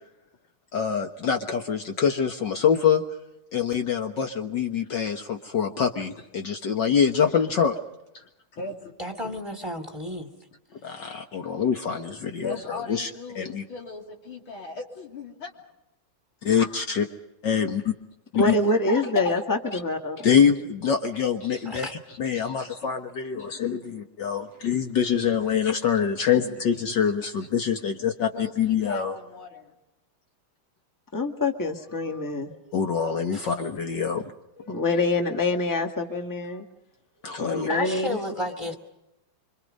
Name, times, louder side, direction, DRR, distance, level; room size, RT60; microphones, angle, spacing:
voice 1, 0.7-3.0 3.5-7.8 10.8-13.1 13.4-13.6 16.4-17.0 17.4-17.8 18.3-18.5 20.2-20.6 20.8-21.9 22.2-29.2 32.7-34.3 37.2-37.7, left 7 dB, 60° left, 5 dB, 1.9 m, -25 dB
voice 2, 8.1-8.9 9.2-9.4 11.4-11.5 12.1-15.5 16.6-17.0 18.3-19.3 20.5-20.6 21.4-21.7 22.1-22.9 23.4-23.6 25.0-25.6 26.2-26.3 26.7-27.3 27.6-27.7 28.2-29.7 33.1-33.3 37.9-38.8, left 3 dB, 80° left, 1 dB, 3.9 m, -39 dB
voice 3, 9.0-10.3 10.8-11.2 21.7-21.9 33.3-33.5 37.7-38.8, equal, 15° right, 6 dB, 2.1 m, -33 dB
voice 4, 18.4-20.3 31.1-32.6 34.6-36.7 37.2-38.2, left 2 dB, 10° left, 4 dB, 1.7 m, -26 dB
26.0 x 26.0 x 5.4 m, 0.90 s
omnidirectional pair, 2.2 m